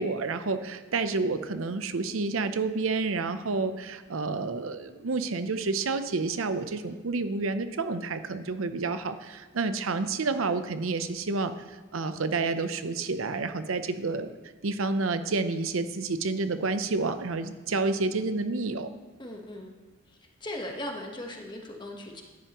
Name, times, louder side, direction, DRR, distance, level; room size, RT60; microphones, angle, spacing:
voice 1, 0.0-14.3 14.6-18.9, right 3 dB, 80° right, 10 dB, 0.7 m, -29 dB
voice 2, 19.2-19.7 20.4-22.2, left 1 dB, 20° left, 2 dB, 1.2 m, -38 dB
13.0 x 10.0 x 3.0 m, 1.3 s
head